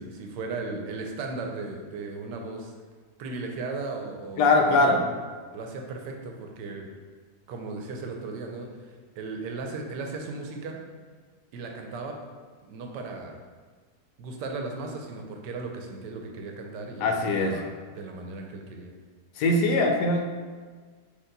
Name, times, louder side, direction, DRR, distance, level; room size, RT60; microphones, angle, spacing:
voice 1, 0.0-2.7 3.2-5.0 5.5-6.9 7.5-10.8 11.5-12.2 12.6-13.4 14.2-18.9, right 3 dB, 85° right, 2 dB, 1.3 m, -36 dB
voice 2, 4.4-5.0 17.0-17.6 19.4-20.2, left 2 dB, 80° left, 3 dB, 1.1 m, -21 dB
4.5 x 2.9 x 3.8 m, 1.5 s
omnidirectional pair, 1.8 m